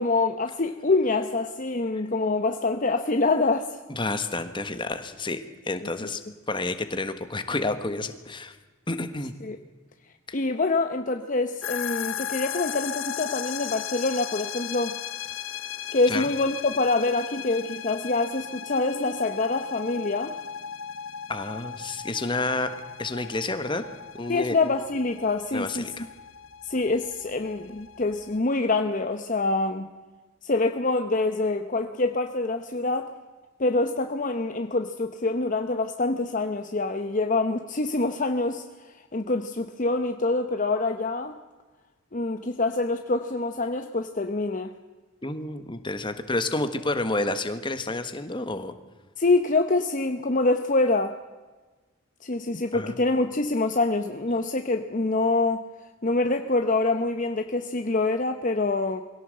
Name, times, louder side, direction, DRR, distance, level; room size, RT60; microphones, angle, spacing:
voice 1, 0.0-3.8 9.4-9.6 10.3-15.0 15.9-20.4 24.3-26.1 26.6-29.9 30.4-33.1 33.6-38.6 39.1-41.4 42.1-44.7 49.2-51.2 52.2-55.6 56.0-59.0, left 3 dB, 40° left, 7 dB, 0.8 m, -25 dB
voice 2, 3.9-5.4 5.6-6.2 6.5-8.5 8.9-9.3 10.3-10.4 16.1-16.3 21.3-22.7 23.0-23.8 24.1-24.6 25.5-26.0 45.2-48.7 52.7-53.0, left 2 dB, 25° left, 9 dB, 1.4 m, -29 dB
sound 1, 11.6-28.4, left 9 dB, 70° left, 1.0 m, -37 dB
21.5 x 17.0 x 7.8 m, 1.3 s
head